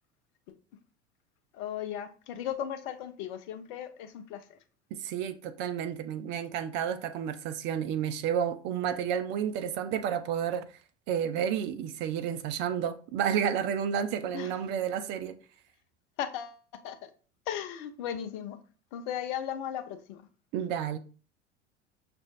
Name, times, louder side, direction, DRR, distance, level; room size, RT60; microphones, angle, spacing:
voice 1, 1.6-4.4 14.3-14.5 16.2-16.6 16.8-17.0 17.5-18.6 18.9-20.2, left 9 dB, 45° left, 0.6 m, -36 dB
voice 2, 4.9-10.6 11.1-15.4 20.5-21.0, right 8 dB, 30° right, 0.4 m, -31 dB
6.1 x 2.5 x 2.3 m
figure-of-eight pair, 75°, 35 cm